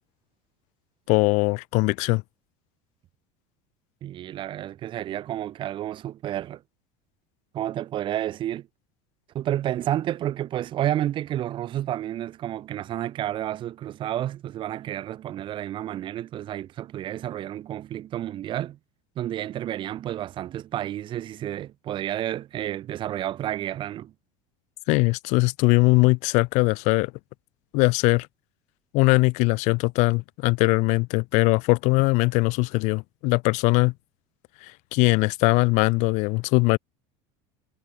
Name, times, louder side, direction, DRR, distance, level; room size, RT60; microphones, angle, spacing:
voice 1, 1.1-2.2 24.9-27.1 27.7-28.3 28.9-33.9 34.6-36.8, left 26 dB, 60° left, 1.8 m, -21 dB
voice 2, 4.0-6.6 7.5-8.7 9.3-18.8 19.2-24.1, right 12 dB, 35° right, 2.3 m, -30 dB
cardioid pair, 150°, 14 cm